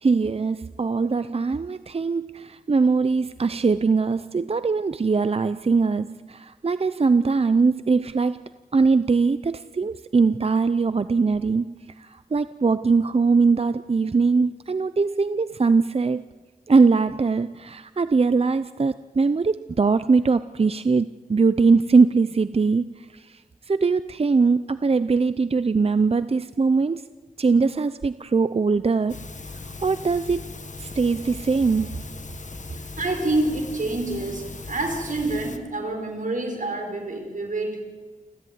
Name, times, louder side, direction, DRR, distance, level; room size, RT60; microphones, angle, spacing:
voice 1, 0.0-16.3 16.7-23.4 23.7-27.1 27.4-29.2 29.8-30.5 30.8-32.0, right 4 dB, 45° right, 13 dB, 0.6 m, -21 dB
sound 1, 29.1-35.6, left 3 dB, 60° left, 1.8 m, -38 dB
voice 2, 33.0-37.8, right 2 dB, 65° right, 3 dB, 5.5 m, -27 dB
29.0 x 13.5 x 9.5 m, 1.3 s
wide cardioid pair, 70°, 14 cm